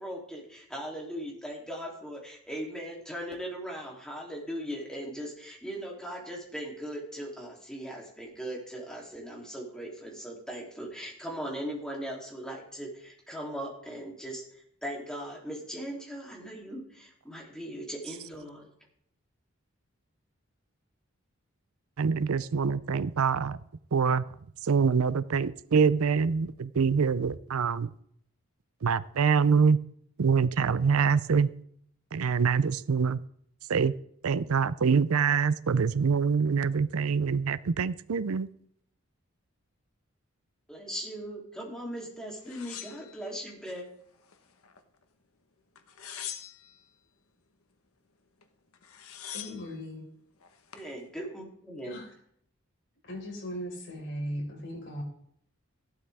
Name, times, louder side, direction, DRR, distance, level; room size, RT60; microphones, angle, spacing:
voice 1, 0.0-14.4 14.8-18.7 40.7-43.9 50.7-51.9, equal, 5° left, -2 dB, 3.0 m, -39 dB
voice 2, 22.0-23.6 23.9-24.3 24.6-27.9 28.8-29.8 30.2-31.5 32.1-33.2 33.7-33.9 34.2-38.5, right 5 dB, 80° right, 17 dB, 0.5 m, -25 dB
sound 1, 42.4-43.8 44.2-45.0 45.8-46.8 48.4-48.5 48.7-49.7 50.4-50.9, left 10 dB, 80° left, 1.2 m, -43 dB
voice 3, 49.3-50.0 51.8-52.1 53.1-55.0, equal, 55° left, -1 dB, 4.7 m, -38 dB
15.0 x 12.0 x 3.5 m, 0.67 s
head